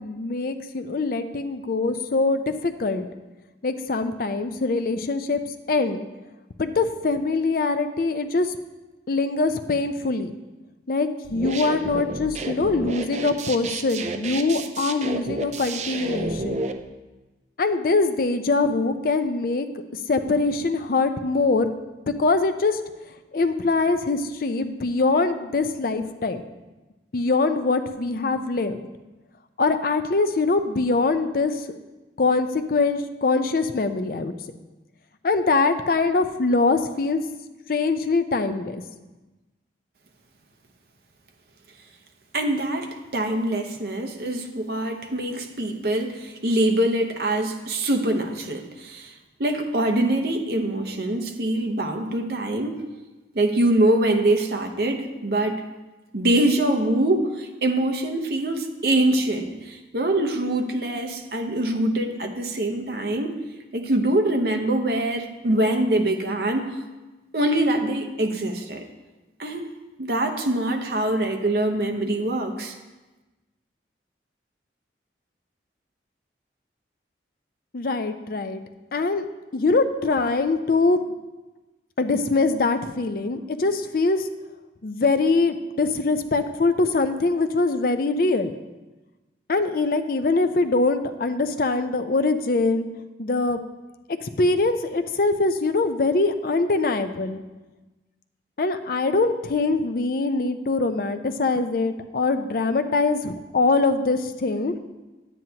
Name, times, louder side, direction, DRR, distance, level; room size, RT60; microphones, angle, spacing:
voice 1, 0.0-3.1 3.6-5.4 5.7-6.1 6.6-8.5 9.1-10.3 10.9-16.6 17.6-19.7 20.1-21.7 22.1-22.8 23.3-26.4 27.1-28.8 29.6-31.6 32.2-34.3 35.2-37.2 37.7-38.8 77.7-78.6 78.9-79.3 79.5-81.0 82.0-84.3 84.8-88.5 89.5-92.9 93.2-93.6 94.2-97.4 98.6-104.7, left 3 dB, 50° left, 9 dB, 0.5 m, -23 dB
sound 1, 11.2-16.7, right 3 dB, 40° right, 0.4 m, -31 dB
voice 2, 42.3-49.1 49.4-52.8 53.3-55.6 56.1-63.3 63.7-66.8 67.3-68.8 69.4-69.7 70.0-72.7, right 1 dB, 55° right, 5 dB, 0.9 m, -24 dB
9.1 x 9.1 x 2.9 m, 1.1 s
head